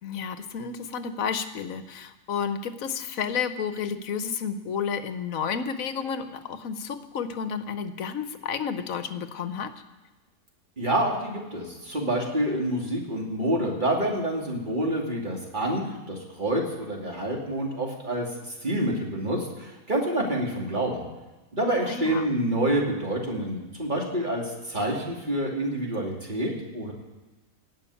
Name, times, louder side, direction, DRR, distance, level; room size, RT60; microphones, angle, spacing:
voice 1, 0.0-9.7 21.8-22.3, left 6 dB, 70° left, 10 dB, 1.2 m, -31 dB
voice 2, 10.8-15.8 16.1-21.0 21.5-26.9, right 1 dB, 30° right, -1 dB, 2.7 m, -27 dB
18.0 x 6.0 x 8.4 m, 1.1 s
omnidirectional pair, 1.5 m